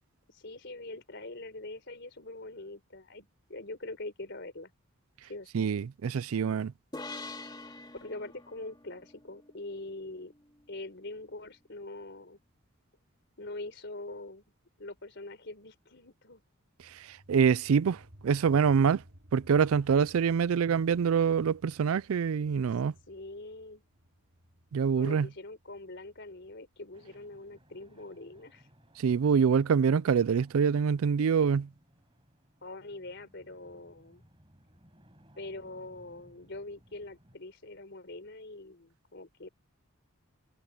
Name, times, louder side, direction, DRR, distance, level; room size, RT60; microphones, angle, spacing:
voice 1, 0.3-4.7 5.3-5.5 8.0-10.3 10.7-12.4 13.4-14.4 14.8-16.4 23.1-23.8 25.0-28.7 32.6-34.2 35.4-39.5, left 2 dB, 55° left, 4.1 m, -43 dB
voice 2, 5.5-6.7 17.1-19.0 19.3-22.9 24.7-25.3 29.0-31.7, right 6 dB, 80° right, 0.4 m, -25 dB
sound 1, 6.9-10.4, left 2 dB, 20° left, 2.5 m, -45 dB
sound 2, 16.8-27.9, equal, 55° right, 3.5 m, -59 dB
sound 3, 26.9-37.4, equal, 25° right, 7.8 m, -62 dB
head